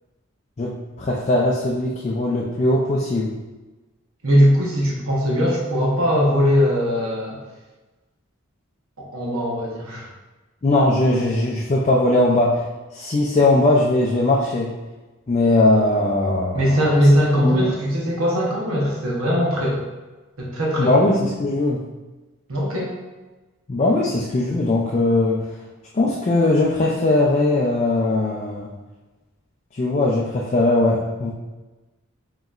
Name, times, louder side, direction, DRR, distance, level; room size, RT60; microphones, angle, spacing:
voice 1, 0.6-3.3 10.6-12.6 12.9-14.7 15.3-16.8 17.4-17.7 20.8-21.8 23.7-25.5 25.9-28.7 29.7-31.3, left 2 dB, 30° left, -3 dB, 0.4 m, -19 dB
voice 2, 4.2-7.4 9.0-10.1 16.5-19.8 20.4-20.9 22.5-22.9, equal, 80° right, -4 dB, 0.9 m, -20 dB
5.1 x 3.0 x 2.4 m, 1.2 s
head